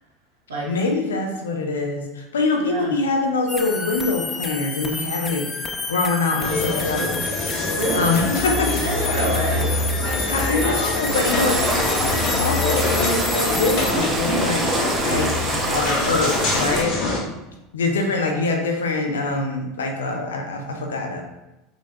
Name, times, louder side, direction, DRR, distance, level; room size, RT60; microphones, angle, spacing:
voice 1, 0.7-7.3 7.9-8.7 10.2-11.8 12.1-14.7 14.9-15.3 15.7-17.0 17.7-21.2, left 3 dB, 75° left, 3 dB, 0.5 m, -24 dB
voice 2, 2.6-2.9 7.7-9.8 10.1-10.7 12.3-12.5 18.1-18.5, right 2 dB, 75° right, -4 dB, 1.1 m, -28 dB
sound 1, 3.5-13.9, left 3 dB, 20° left, 0.3 m, -29 dB
sound 2, 6.4-17.2, left 2 dB, 55° left, 0.8 m, -25 dB
sound 3, 11.1-16.8, right 2 dB, 25° right, 0.6 m, -26 dB
3.8 x 2.3 x 2.7 m, 0.98 s
figure-of-eight pair, 75°, 0 cm